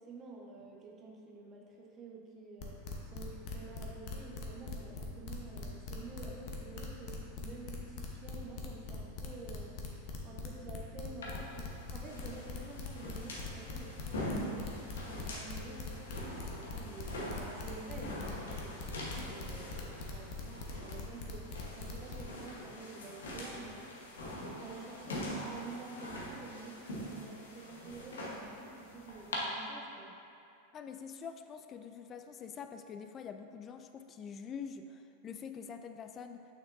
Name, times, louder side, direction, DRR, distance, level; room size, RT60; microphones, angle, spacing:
voice 1, 0.0-9.8 10.2-17.1 17.4-23.9 24.2-30.2, right 3 dB, 30° right, -1 dB, 0.9 m, -49 dB
sound 1, 2.6-22.2, left 4 dB, 50° left, 0.9 m, -42 dB
sound 2, 11.2-29.4, left 1 dB, 80° left, 1.1 m, -44 dB
voice 2, 30.7-36.5, left 6 dB, 30° left, 8 dB, 0.4 m, -45 dB
6.7 x 5.9 x 2.6 m, 2.6 s
hypercardioid pair, 95°, 0 cm